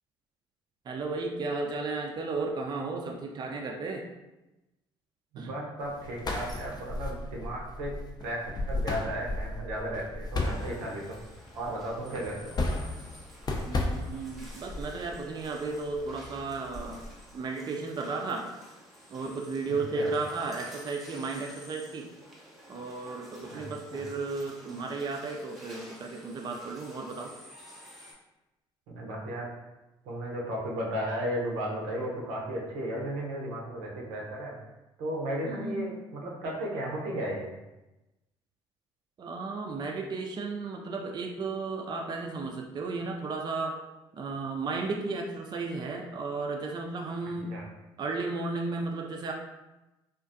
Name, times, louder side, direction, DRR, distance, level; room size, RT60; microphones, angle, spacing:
voice 1, 0.9-4.1 5.4-5.5 13.6-17.0 17.3-18.5 19.1-22.1 22.7-27.3 35.4-35.9 39.2-43.7 44.1-47.6 48.0-49.3, right 3 dB, 35° right, 2 dB, 0.4 m, -34 dB
voice 2, 5.3-8.4 8.7-11.2 11.5-12.6 20.0-20.1 23.5-23.6 23.9-24.0 28.9-29.5 30.0-34.5 35.0-37.5 47.5-47.6, right 1 dB, 80° right, -2 dB, 0.6 m, -34 dB
sound 1, 5.8-17.1, left 2 dB, 35° left, 0.5 m, -35 dB
sound 2, 10.4-28.1, equal, ahead, 0.9 m, -52 dB
2.5 x 2.3 x 2.5 m, 1.0 s
hypercardioid pair, 60°, 12 cm